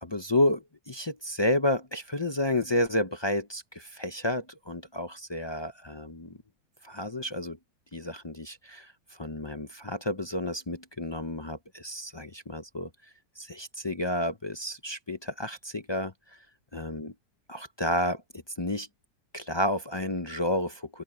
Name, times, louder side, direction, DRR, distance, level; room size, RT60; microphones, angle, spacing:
voice 1, 0.0-6.4 6.8-7.6 7.9-8.9 9.2-12.9 13.4-16.1 16.7-17.1 17.5-18.2 18.6-18.9 19.3-21.0, left 1 dB, 35° left, 0.4 m, -30 dB
open air
omnidirectional pair, 1.7 m